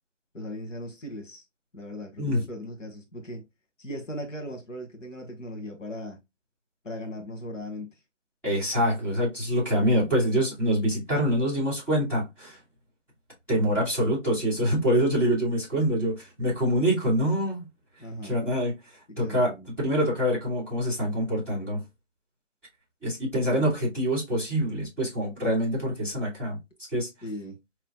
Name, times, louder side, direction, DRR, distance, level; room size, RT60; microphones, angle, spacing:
voice 1, 0.3-1.4 1.7-3.5 3.8-6.2 6.8-7.9 18.0-18.4 19.1-19.7 23.4-23.7 27.2-27.6, left 1 dB, 85° left, 1.6 m, -38 dB
voice 2, 8.4-12.6 13.5-17.6 18.2-18.7 19.2-21.8 23.0-26.6 26.9-27.1, equal, 5° left, 2.0 m, -25 dB
4.6 x 3.3 x 2.2 m
figure-of-eight pair, 165°, 37 cm